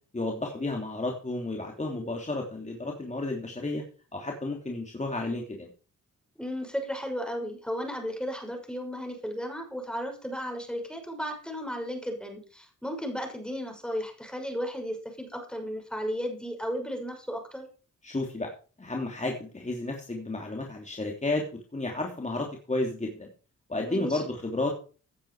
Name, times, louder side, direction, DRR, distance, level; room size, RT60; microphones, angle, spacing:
voice 1, 0.1-3.8 4.1-5.7 18.0-18.5 18.8-21.5 21.7-23.3 23.7-24.7, left 2 dB, 20° left, 1 dB, 3.1 m, -32 dB
voice 2, 6.4-17.7 23.8-24.2, equal, 5° left, 3 dB, 6.0 m, -34 dB
17.0 x 9.3 x 4.9 m, 0.38 s
cardioid pair, 85°, 31 cm